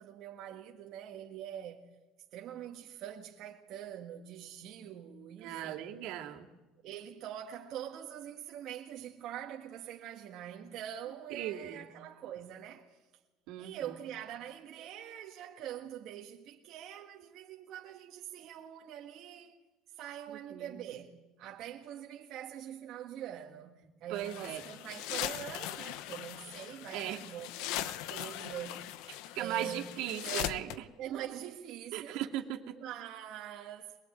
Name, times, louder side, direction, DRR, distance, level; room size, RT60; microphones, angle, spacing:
voice 1, 0.0-1.8 2.3-5.9 6.8-13.0 13.6-19.6 19.9-28.9 29.3-32.2 32.7-34.0, right 10 dB, 50° right, 1.7 m, -44 dB
voice 2, 5.4-6.5 11.3-11.9 13.5-14.0 20.5-20.8 24.1-24.6 26.9-27.2 29.3-30.7 31.9-32.8, right 12 dB, 70° right, 2.4 m, -38 dB
sound 1, 24.2-30.8, left 13 dB, 70° left, 1.0 m, -40 dB
22.0 x 21.5 x 9.2 m
cardioid pair, 150°, 0 cm